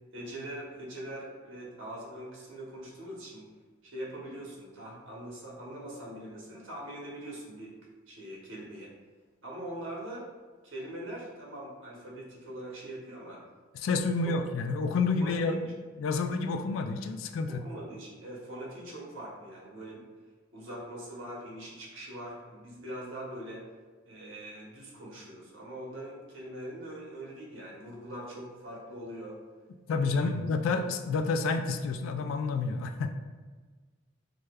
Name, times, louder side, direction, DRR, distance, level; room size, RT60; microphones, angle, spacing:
voice 1, 0.1-3.5 3.8-7.7 8.1-8.9 9.4-10.3 10.6-13.4 14.2-14.4 15.2-15.5 17.5-20.0 20.5-23.7 24.0-29.4 30.0-30.4, right 1 dB, 75° right, -4 dB, 1.0 m, -42 dB
voice 2, 13.7-15.7 16.0-17.6 29.9-33.1, left 4 dB, 80° left, 8 dB, 0.3 m, -29 dB
4.8 x 2.2 x 2.2 m, 1.4 s
head